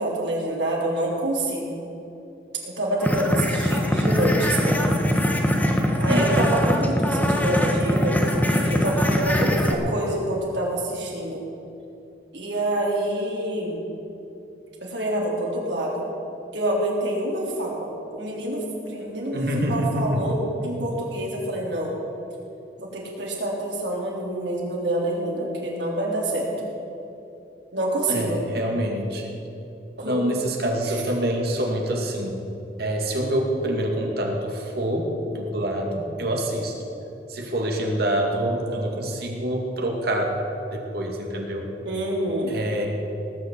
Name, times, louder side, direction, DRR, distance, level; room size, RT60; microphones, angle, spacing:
voice 1, 0.0-1.8 2.6-4.8 6.0-11.4 12.3-13.8 14.8-16.0 16.5-22.0 22.8-26.7 27.7-28.5 30.0-30.2 30.9-31.0 41.9-42.5, right 1 dB, 85° right, -3 dB, 3.6 m, -27 dB
sound 1, 3.0-9.7, equal, 10° left, 1.1 m, -22 dB
voice 2, 6.1-6.5 19.3-20.4 28.1-29.4 30.0-32.4 32.8-36.7 37.3-40.4 40.7-41.7 42.5-42.9, right 1 dB, 60° right, 1 dB, 2.3 m, -26 dB
18.5 x 6.6 x 8.2 m, 2.9 s
head